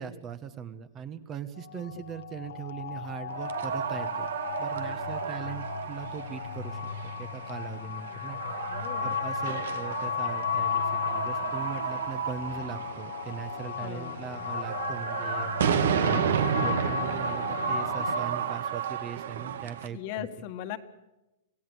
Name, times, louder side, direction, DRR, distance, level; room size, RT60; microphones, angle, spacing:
voice 1, 0.0-4.3 4.6-15.7 16.0-20.3, right 7 dB, 20° right, 12 dB, 1.2 m, -40 dB
sound 1, 1.6-18.2, left 9 dB, 85° left, 1.6 m, -35 dB
sound 2, 3.3-19.9, right 8 dB, 75° right, 2.1 m, -32 dB
voice 2, 8.7-9.1 13.8-14.2 19.9-20.8, left 12 dB, 40° left, 9 dB, 1.8 m, -38 dB
27.0 x 17.0 x 8.2 m, 0.97 s
supercardioid pair, 170°, 0 cm